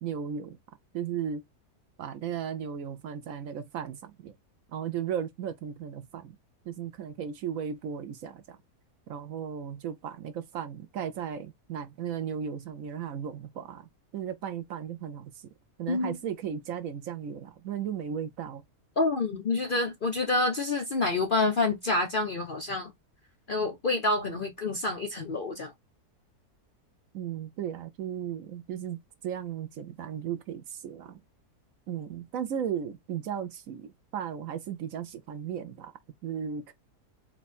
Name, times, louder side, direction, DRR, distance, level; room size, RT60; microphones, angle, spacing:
voice 1, 0.0-0.6 0.9-1.4 2.0-4.3 4.7-6.4 6.7-8.6 9.1-15.5 15.8-18.6 27.1-29.0 29.2-31.2 31.9-35.9 36.2-36.7, right 8 dB, 65° right, 0.9 m, -35 dB
voice 2, 19.0-22.9 23.5-25.7, left 2 dB, 50° left, 0.6 m, -28 dB
4.4 x 2.2 x 4.1 m
omnidirectional pair, 1.6 m